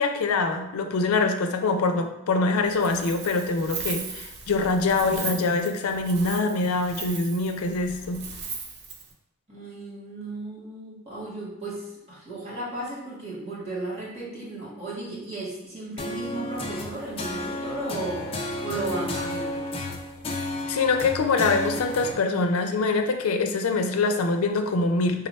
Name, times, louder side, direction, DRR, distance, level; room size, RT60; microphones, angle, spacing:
voice 1, 0.0-8.2 20.7-25.3, left 3 dB, 90° left, 6 dB, 0.4 m, -24 dB
Wind, 2.6-9.1, right 5 dB, 50° right, 0.5 m, -38 dB
voice 2, 9.5-19.7, right 2 dB, 30° right, -7 dB, 1.3 m, -35 dB
sound 1, 16.0-22.1, left 2 dB, 25° left, 0.4 m, -32 dB
3.8 x 2.1 x 4.1 m, 0.94 s
head